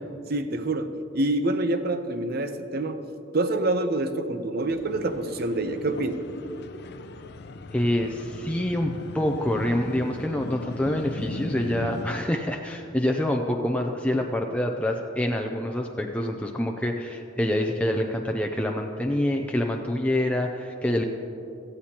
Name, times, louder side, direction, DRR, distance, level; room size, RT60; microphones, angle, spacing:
voice 1, 0.3-3.0 3.3-6.3 20.9-21.0, right 2 dB, 55° right, 9 dB, 0.8 m, -27 dB
sound 1, 4.6-12.1, left 2 dB, 60° left, 0.6 m, -38 dB
voice 2, 7.7-21.0, left 1 dB, 5° left, 2 dB, 0.5 m, -26 dB
18.0 x 14.5 x 2.9 m, 2.8 s
head